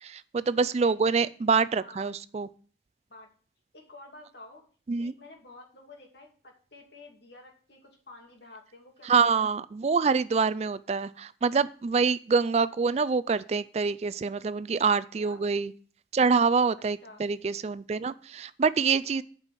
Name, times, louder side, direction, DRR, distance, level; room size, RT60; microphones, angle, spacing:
voice 1, 0.0-2.5 4.9-5.1 9.0-15.7 16.1-19.2, right 5 dB, 35° right, 16 dB, 0.3 m, -26 dB
voice 2, 1.8-2.1 3.1-3.3 3.7-4.7 5.0-9.4 15.2-15.4 17.0-17.2, left 2 dB, 70° left, 1 dB, 2.6 m, -50 dB
8.9 x 5.4 x 7.4 m, 0.43 s
head